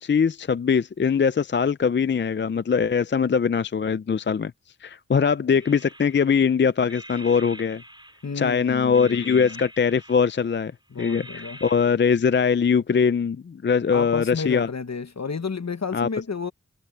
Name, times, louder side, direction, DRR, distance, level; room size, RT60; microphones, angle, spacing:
voice 1, 0.0-4.5 4.8-7.8 8.4-10.7 11.0-14.7 15.9-16.1, left 6 dB, 40° left, 0.4 m, -22 dB
sound 1, 5.6-6.5 6.9-8.5 8.9-10.6 11.0-11.9, equal, 15° right, 3.4 m, -44 dB
voice 2, 8.2-9.6 10.9-11.6 13.9-16.5, left 5 dB, 65° left, 1.4 m, -31 dB
wide cardioid pair, 55°, 29 cm